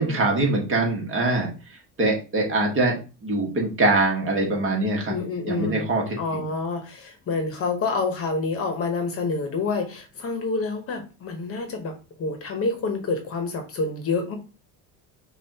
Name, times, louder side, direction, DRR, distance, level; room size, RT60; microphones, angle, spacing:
voice 1, 0.0-1.5 2.0-2.9 3.2-5.1 5.5-6.5, right 2 dB, 35° right, 0 dB, 1.4 m, -23 dB
voice 2, 5.1-5.9 6.2-14.4, left 3 dB, 40° left, 5 dB, 1.0 m, -28 dB
5.3 x 2.5 x 2.8 m, 0.33 s
cardioid pair, 120°, 36 cm